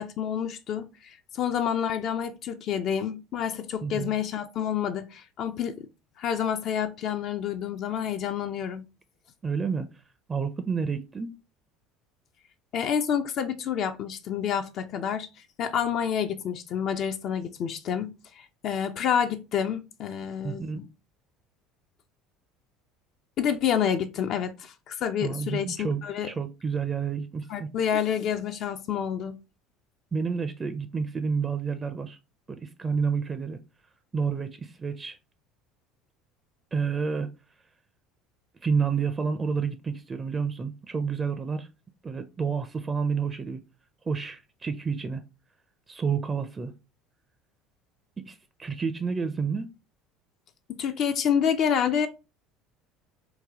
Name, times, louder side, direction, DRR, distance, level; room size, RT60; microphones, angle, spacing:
voice 1, 0.0-5.9 6.2-8.9 12.7-15.3 15.6-20.9 23.4-26.3 27.5-29.4 50.7-52.1, left 8 dB, 55° left, 0.4 m, -28 dB
voice 2, 9.4-9.9 10.3-11.3 20.4-20.8 25.2-27.7 30.1-32.2 32.5-33.6 34.1-35.2 36.7-37.3 38.6-41.7 42.0-43.6 44.1-45.2 45.9-46.7 48.2-49.7, right 5 dB, 25° right, 0.4 m, -29 dB
3.8 x 2.2 x 2.8 m
hypercardioid pair, 70°, 0 cm